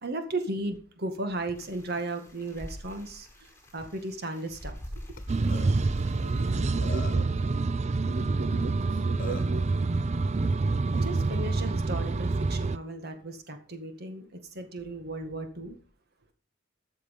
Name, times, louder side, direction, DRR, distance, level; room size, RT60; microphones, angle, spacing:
voice 1, 0.0-3.3 3.7-4.7 8.3-8.4 10.9-15.8, right 2 dB, 55° right, 7 dB, 2.0 m, -35 dB
sound 1, 1.5-6.7, equal, 10° left, 4.9 m, -44 dB
Burping eructation, 5.2-5.3 5.5-5.7 6.4-6.5 6.8-7.3 8.7-8.8 9.2-9.6, left 4 dB, 45° left, 1.6 m, -40 dB
sound 2, 5.3-12.8, right 3 dB, 35° right, 0.5 m, -27 dB
voice 2, 5.8-7.7 8.0-9.9, right 3 dB, 75° right, 8 dB, 0.9 m, -39 dB
13.5 x 6.8 x 5.4 m, 0.41 s
head